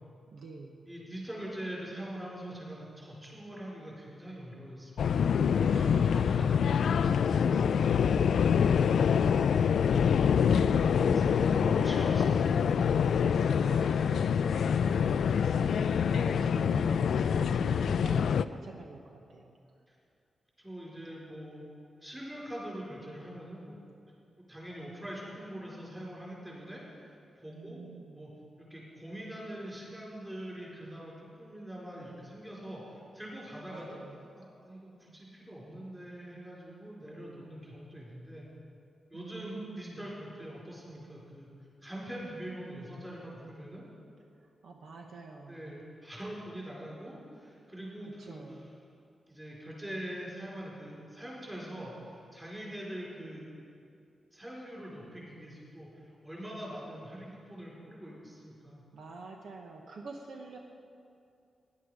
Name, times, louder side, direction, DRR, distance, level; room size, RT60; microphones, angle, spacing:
voice 1, 0.3-0.8 5.6-8.8 13.4-19.6 27.5-28.3 33.7-34.3 39.1-40.1 44.6-45.7 48.0-48.7 58.9-60.6, right 3 dB, 70° right, 1 dB, 1.1 m, -47 dB
voice 2, 0.9-4.9 9.2-10.0 10.2-12.6 19.9-20.0 20.6-21.6 22.0-23.8 24.4-27.1 27.3-27.8 28.1-28.3 28.6-34.0 34.4-38.5 39.1-41.5 41.8-43.8 45.5-48.6 49.3-53.5 54.3-58.8, right 1 dB, 10° right, -5 dB, 4.3 m, -43 dB
sound 1, 5.0-18.4, left 7 dB, 75° left, 0.3 m, -25 dB
17.0 x 11.0 x 4.9 m, 2.4 s
wide cardioid pair, 150°, 0 cm